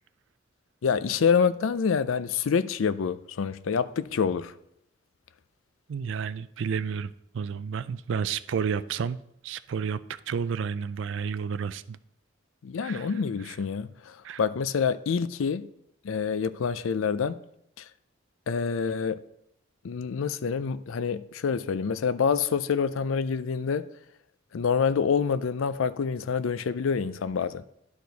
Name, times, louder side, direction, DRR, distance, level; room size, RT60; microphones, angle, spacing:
voice 1, 0.8-4.5 12.6-15.7 16.0-17.4 17.8-17.9 18.5-19.2 19.8-23.9 24.5-27.6, left 6 dB, 80° left, 0.4 m, -27 dB
voice 2, 5.9-9.2 9.4-10.0 10.3-12.0 12.8-13.1 14.2-14.4, right 6 dB, 65° right, 0.3 m, -31 dB
11.0 x 4.8 x 4.0 m
head